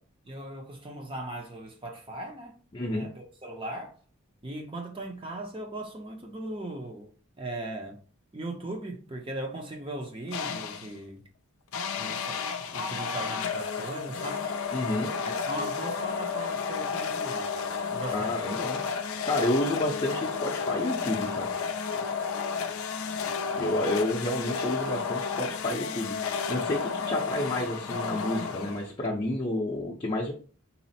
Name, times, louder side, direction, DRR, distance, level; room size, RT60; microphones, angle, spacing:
voice 1, 0.3-2.6 2.9-4.0 4.4-7.1 7.4-8.0 8.3-11.2 12.0-12.4 12.7-14.5 15.2-17.6 17.9-18.3, right 1 dB, 25° right, 0.6 m, -38 dB
voice 2, 2.7-3.1 14.7-15.1 18.1-18.8 19.2-21.5 23.6-30.3, left 1 dB, 25° left, 0.6 m, -30 dB
sound 1, 10.3-11.0 11.7-29.1, left 5 dB, 75° left, 0.4 m, -32 dB
4.1 x 2.0 x 4.1 m
head